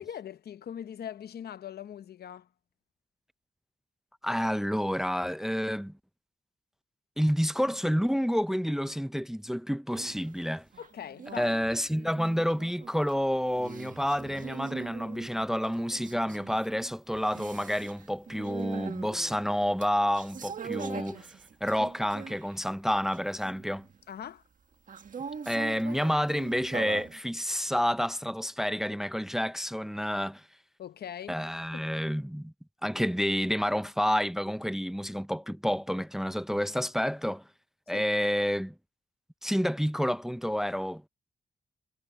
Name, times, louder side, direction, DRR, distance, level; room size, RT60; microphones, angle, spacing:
voice 1, 0.0-2.5 10.8-11.6 20.8-21.3 24.1-24.4 30.8-31.4 31.7-31.8 37.9-38.1, left 9 dB, 90° left, 0.8 m, -41 dB
voice 2, 4.2-5.9 7.2-10.6 11.4-21.2 21.6-23.9 25.5-30.4 31.3-32.5 32.8-37.4 37.9-38.7 39.4-41.0, equal, 5° right, 0.5 m, -29 dB
sound 1, 9.9-10.4 10.7-22.6 23.0-24.0 24.9-27.2, right 6 dB, 55° right, 1.6 m, -43 dB
wide cardioid pair, 140°, 16 cm